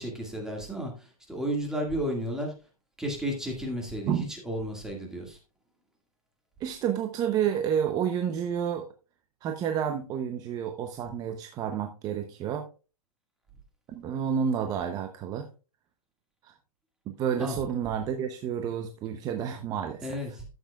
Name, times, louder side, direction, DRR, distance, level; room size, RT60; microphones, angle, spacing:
voice 1, 0.0-2.5 3.0-5.4 17.4-17.6 20.0-20.4, equal, 5° right, 0 dB, 1.9 m, -33 dB
voice 2, 6.6-8.9 9.4-12.6 13.9-15.5 16.4-16.5 17.1-20.2, right 8 dB, 20° right, 6 dB, 0.7 m, -30 dB
13.0 x 8.0 x 2.3 m, 0.33 s
hypercardioid pair, 150°, 19 cm